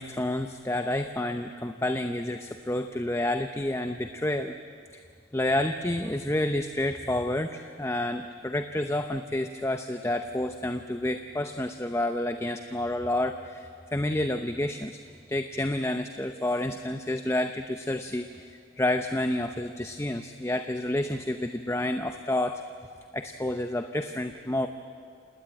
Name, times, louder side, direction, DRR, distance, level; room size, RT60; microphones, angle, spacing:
voice 1, 0.0-4.6 4.9-5.0 5.3-15.0 15.3-18.3 18.8-22.6 23.1-24.7, left 1 dB, 15° left, 7 dB, 0.7 m, -29 dB
28.0 x 19.0 x 9.1 m, 2.2 s
head